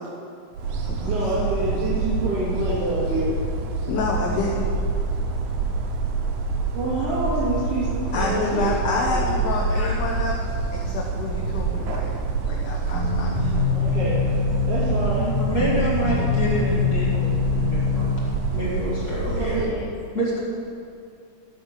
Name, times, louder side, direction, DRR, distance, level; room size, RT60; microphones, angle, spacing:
sound 1, 0.5-19.7, right 4 dB, 85° right, 2.5 m, -27 dB
voice 1, 1.0-3.3 6.7-9.3 13.7-14.2 14.7-15.3 19.4-19.7, right 1 dB, 50° right, -10 dB, 2.9 m, -27 dB
voice 2, 3.9-4.7 8.1-10.3 10.7-12.2 12.4-13.7, left 3 dB, 65° left, -2 dB, 1.7 m, -28 dB
sound 2, 12.9-18.2, left 5 dB, 10° right, 2.6 m, -24 dB
voice 3, 15.4-18.1 18.5-19.6 20.1-20.4, left 1 dB, 35° left, -7 dB, 2.4 m, -27 dB
13.0 x 6.1 x 6.5 m, 2.4 s
omnidirectional pair, 3.5 m